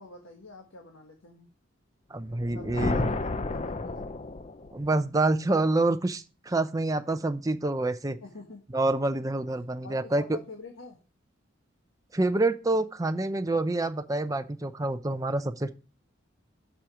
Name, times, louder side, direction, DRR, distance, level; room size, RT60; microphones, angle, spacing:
voice 1, 0.0-1.5 2.5-4.1 8.2-8.6 9.8-11.0, left 3 dB, 75° left, 2 dB, 1.6 m, -46 dB
voice 2, 2.1-3.1 4.7-8.2 8.7-10.2 12.1-15.7, right 2 dB, 15° right, 9 dB, 0.5 m, -27 dB
sound 1, 2.3-4.9, left 3 dB, 30° left, 0.5 m, -32 dB
7.5 x 6.3 x 5.0 m, 0.33 s
head